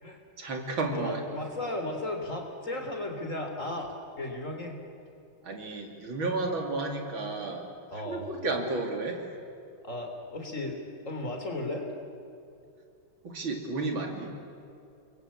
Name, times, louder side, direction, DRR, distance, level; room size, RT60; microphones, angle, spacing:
voice 1, 0.4-1.2 5.4-7.7 8.1-9.2 13.2-14.4, right 3 dB, 70° right, 3 dB, 3.6 m, -32 dB
voice 2, 0.9-4.8 7.9-8.3 9.8-10.8 11.1-11.9, left 1 dB, 35° left, 3 dB, 3.8 m, -35 dB
29.5 x 21.5 x 8.7 m, 2.6 s
omnidirectional pair, 2.2 m